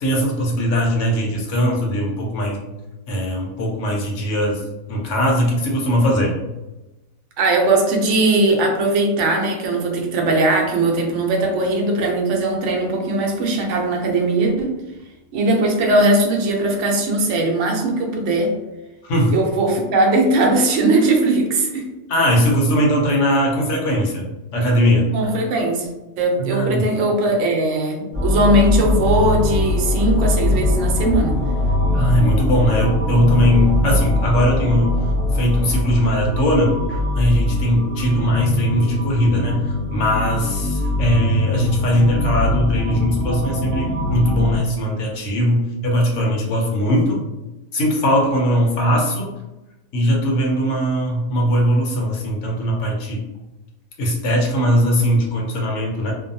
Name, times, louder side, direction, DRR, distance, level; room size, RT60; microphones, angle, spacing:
voice 1, 0.0-2.6 3.1-4.6 4.9-6.3 19.0-19.4 22.1-24.3 24.5-25.1 26.4-26.9 31.9-35.0 35.3-47.2 47.7-49.3 49.9-53.2 54.0-56.1, equal, 70° left, -1 dB, 1.0 m, -19 dB
voice 2, 7.4-14.8 15.3-18.5 19.3-21.9 25.1-25.9 26.2-31.4, right 2 dB, 70° right, 1 dB, 0.9 m, -19 dB
sound 1, 28.1-44.6, left 2 dB, 25° right, 1.0 m, -21 dB
2.5 x 2.2 x 2.6 m, 1.0 s
omnidirectional pair, 1.3 m